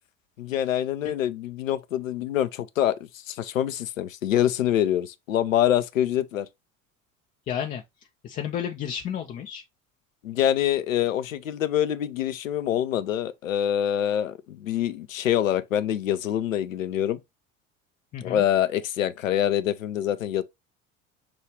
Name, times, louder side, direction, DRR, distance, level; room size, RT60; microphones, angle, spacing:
voice 1, 0.4-3.0 3.3-6.5 10.2-17.2 18.2-20.4, left 11 dB, 75° left, 0.6 m, -25 dB
voice 2, 7.5-7.8 8.2-9.6 18.1-18.4, left 9 dB, 20° left, 0.4 m, -31 dB
6.0 x 2.4 x 3.0 m
figure-of-eight pair, 70°, 39 cm